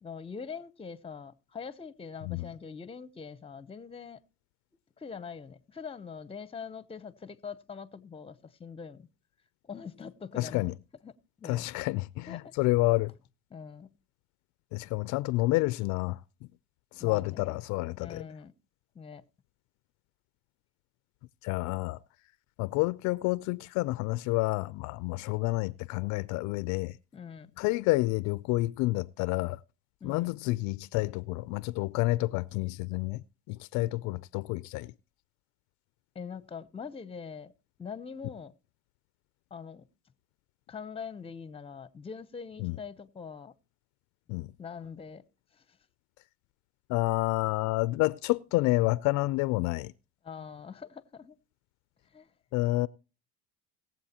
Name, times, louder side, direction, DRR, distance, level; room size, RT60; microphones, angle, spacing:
voice 1, 0.0-4.2 5.0-9.1 9.6-10.7 11.0-11.6 12.3-12.6 13.5-13.9 17.0-17.6 18.0-18.5 18.9-19.2 27.1-27.5 30.0-30.4 36.1-37.5 37.8-38.5 39.5-39.9 40.7-43.5 44.6-45.2 45.5-45.8 50.2-51.4 52.0-52.3, left 6 dB, 20° left, 0.7 m, -43 dB
voice 2, 10.4-10.7 11.4-13.1 14.7-16.2 16.9-18.2 21.4-22.0 22.6-27.0 27.6-29.6 30.0-34.9 42.6-42.8 44.3-44.5 46.9-49.9 52.5-52.9, left 20 dB, 65° left, 0.4 m, -29 dB
20.5 x 7.6 x 2.9 m
supercardioid pair, 100°, 32 cm